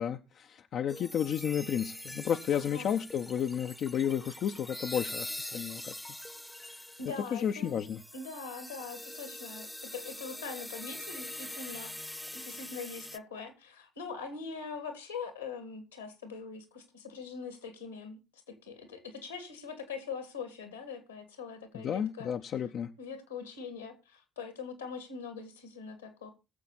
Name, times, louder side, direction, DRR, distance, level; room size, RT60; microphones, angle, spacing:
voice 1, 0.0-5.9 7.3-8.0 21.7-22.9, left 8 dB, 55° left, 0.7 m, -32 dB
sound 1, 0.9-13.2, left 1 dB, 10° left, 0.9 m, -44 dB
voice 2, 2.5-2.9 7.0-11.9 12.3-22.3 23.0-26.3, left 5 dB, 90° left, 2.3 m, -42 dB
20.5 x 7.3 x 4.1 m
figure-of-eight pair, 45°, 0 cm